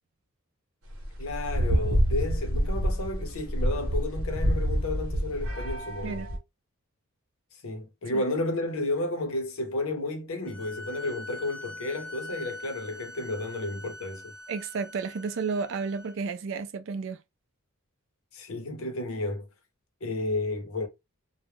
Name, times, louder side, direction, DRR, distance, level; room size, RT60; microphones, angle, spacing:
sound 1, 0.9-6.4, equal, 75° right, 0.9 m, -27 dB
voice 1, 1.2-6.3 7.6-14.3 18.3-19.5 20.0-20.9, left 2 dB, 70° left, 0.7 m, -32 dB
sound 2, 10.4-16.1, left 1 dB, 10° left, 0.5 m, -43 dB
voice 2, 14.5-17.2, right 5 dB, 55° right, 0.3 m, -32 dB
2.2 x 2.1 x 3.0 m
head